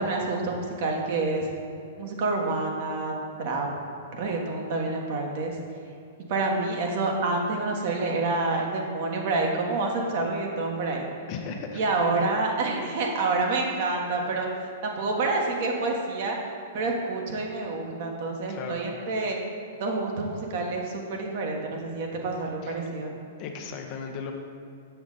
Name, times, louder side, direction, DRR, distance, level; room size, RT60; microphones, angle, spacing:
voice 1, 0.0-1.5 2.0-3.1 3.4-3.7 4.1-5.5 6.3-11.1 11.7-14.5 14.8-16.4 16.7-19.4 19.8-23.1, right 3 dB, 50° right, 0 dB, 1.3 m, -28 dB
voice 2, 11.3-11.8 18.5-18.8 22.6-22.9 23.4-24.3, left 5 dB, 40° left, 3 dB, 0.9 m, -36 dB
7.2 x 7.0 x 4.0 m, 2.5 s
figure-of-eight pair, 105°, 0 cm